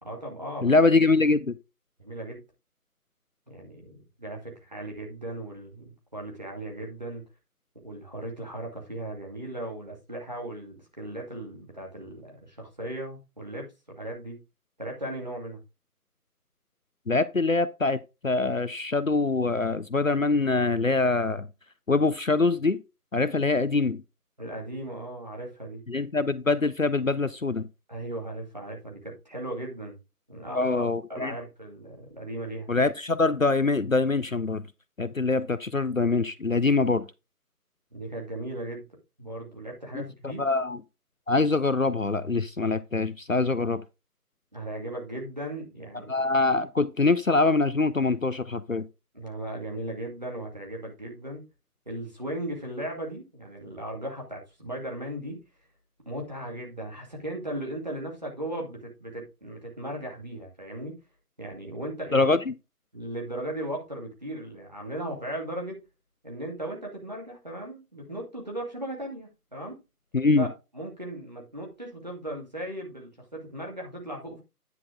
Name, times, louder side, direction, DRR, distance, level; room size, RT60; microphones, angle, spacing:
voice 1, 0.0-0.7 2.0-2.4 3.5-7.2 7.8-14.4 14.8-15.6 24.4-25.8 27.9-30.0 30.3-30.8 31.1-32.7 37.9-38.9 39.2-40.4 44.5-46.1 49.1-51.4 51.9-55.4 56.1-60.9 61.4-62.3 62.9-65.8 66.2-69.8 70.4-70.5 70.7-74.4, right 1 dB, 25° right, 2.2 m, -37 dB
voice 2, 0.6-1.6 17.1-21.5 21.9-22.8 23.1-24.0 25.9-27.7 30.5-31.3 32.7-34.6 35.0-37.0 39.9-40.0 40.4-40.8 41.3-43.8 46.1-48.9 62.1-62.5 70.1-70.5, left 3 dB, 60° left, 0.6 m, -24 dB
9.8 x 4.3 x 4.6 m
figure-of-eight pair, 170°, 46 cm